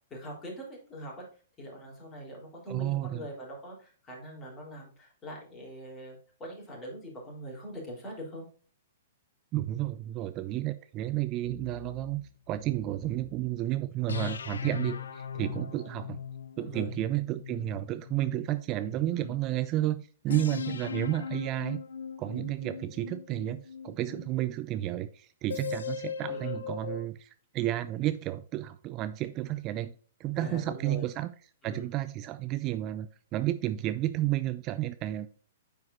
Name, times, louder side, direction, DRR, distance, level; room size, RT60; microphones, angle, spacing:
voice 1, 0.1-1.3 1.6-8.5 14.9-15.0 16.6-16.9 19.1-19.4 20.3-20.4 20.8-20.9 26.2-26.6 29.5-29.6 30.3-31.1 31.6-31.9, equal, 25° left, 3.6 m, -43 dB
voice 2, 2.7-3.2 9.5-12.2 12.5-16.2 16.6-21.8 22.2-29.9 30.2-31.3 31.6-35.3, right 14 dB, 30° right, 0.4 m, -32 dB
sound 1, 11.4-13.5 14.1-19.3 20.3-24.6 25.5-27.1, left 7 dB, 70° left, 0.4 m, -39 dB
9.6 x 4.7 x 2.6 m
figure-of-eight pair, 115°, 0 cm